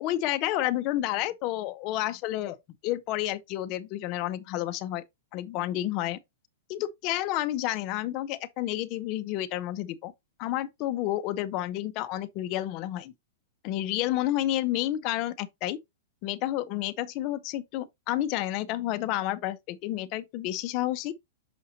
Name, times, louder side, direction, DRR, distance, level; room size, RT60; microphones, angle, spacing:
voice 1, 0.0-2.6 2.8-5.0 5.3-6.2 6.7-10.1 10.4-13.1 13.6-15.8 16.2-21.1, left 14 dB, 40° left, 0.7 m, -30 dB
6.0 x 5.5 x 2.8 m
hypercardioid pair, 130°, 0 cm